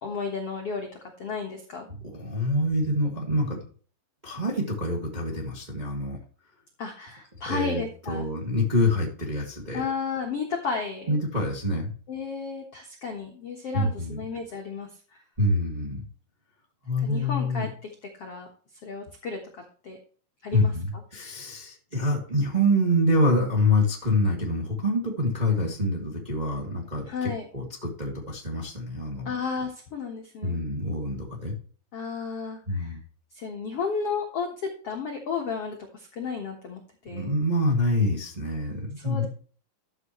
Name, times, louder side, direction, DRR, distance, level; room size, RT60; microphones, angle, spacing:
voice 1, 0.0-1.9 6.8-8.2 9.7-11.2 12.1-15.2 17.0-17.9 18.2-18.5 18.8-20.0 20.4-20.7 27.1-27.5 29.2-30.6 31.9-33.0 33.3-37.3 39.0-39.3, left 5 dB, 60° left, 2 dB, 1.6 m, -33 dB
voice 2, 2.0-3.6 4.2-6.2 7.4-9.8 11.1-11.9 13.7-14.2 15.4-16.0 16.8-17.6 20.5-29.3 30.4-31.5 32.7-33.0 37.1-39.3, left 1 dB, 15° right, -2 dB, 1.4 m, -26 dB
13.0 x 7.5 x 3.1 m, 0.42 s
omnidirectional pair, 4.7 m